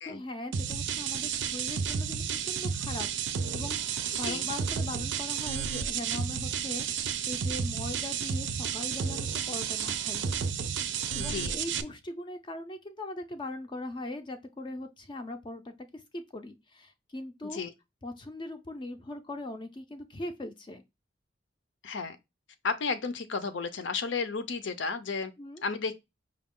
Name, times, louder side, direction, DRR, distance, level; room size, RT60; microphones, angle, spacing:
voice 1, 0.0-3.1 3.5-10.3 11.1-17.6 18.0-20.8 25.4-25.7, left 2 dB, 25° left, 0.4 m, -40 dB
sound 1, 0.5-11.8, right 7 dB, 75° right, 0.4 m, -32 dB
voice 2, 11.2-11.6 17.5-17.7 21.8-22.2 22.6-25.3 25.6-25.9, left 4 dB, 80° left, 0.6 m, -33 dB
5.0 x 2.3 x 3.6 m
head